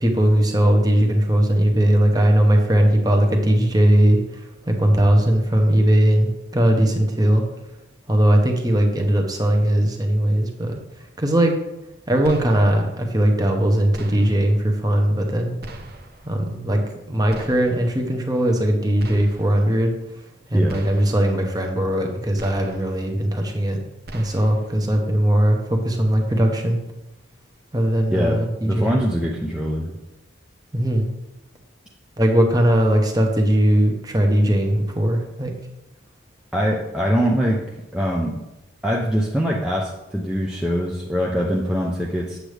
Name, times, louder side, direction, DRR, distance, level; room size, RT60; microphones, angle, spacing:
voice 1, 0.0-4.2 4.7-7.4 8.1-10.7 11.2-11.5 12.1-15.5 16.2-16.8 17.1-19.9 20.5-23.8 24.1-26.8 27.7-29.0 30.7-31.1 32.2-35.5, right 1 dB, 20° right, 3 dB, 1.0 m, -19 dB
sound 1, 12.2-12.9 13.9-14.6 15.6-16.3 17.3-18.0 19.0-19.7 20.7-21.4 22.4-23.1 24.1-24.8, right 1 dB, 50° right, 0.8 m, -40 dB
voice 2, 28.1-29.9 36.5-37.6 37.9-38.4 38.8-42.4, equal, 5° right, -3 dB, 0.6 m, -23 dB
8.1 x 7.6 x 3.4 m, 0.93 s
head